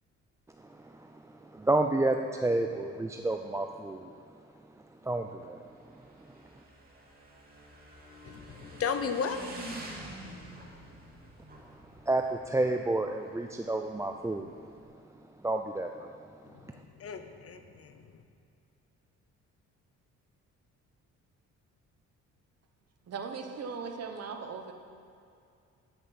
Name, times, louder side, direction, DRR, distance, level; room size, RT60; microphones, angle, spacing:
voice 1, 1.5-4.1 5.0-5.6 12.1-14.5 15.4-16.1, right 2 dB, 10° right, 4 dB, 0.4 m, -29 dB
Motorcycle / Engine, 5.6-14.8, right 1 dB, 30° right, 2.4 m, -47 dB
voice 2, 8.2-9.5 16.5-18.2, left 6 dB, 50° left, 8 dB, 0.9 m, -35 dB
voice 3, 23.1-24.7, right 5 dB, 55° right, 5 dB, 1.2 m, -38 dB
9.1 x 8.5 x 5.9 m, 2.4 s
cardioid pair, 90°, 30 cm